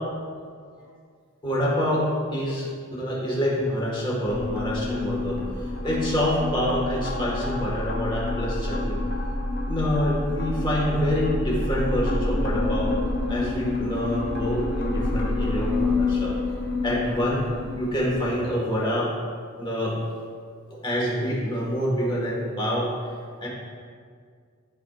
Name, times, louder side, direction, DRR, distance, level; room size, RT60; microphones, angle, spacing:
voice 1, 1.4-5.4 5.8-9.0 9.7-12.9 13.3-16.3 16.8-17.5 17.8-19.1 19.6-20.0 20.8-22.9 23.4-23.5, equal, 20° left, -4 dB, 1.6 m, -26 dB
sound 1, 4.3-18.3, left 2 dB, 50° left, 0.9 m, -28 dB
12.5 x 4.4 x 2.4 m, 2.1 s
head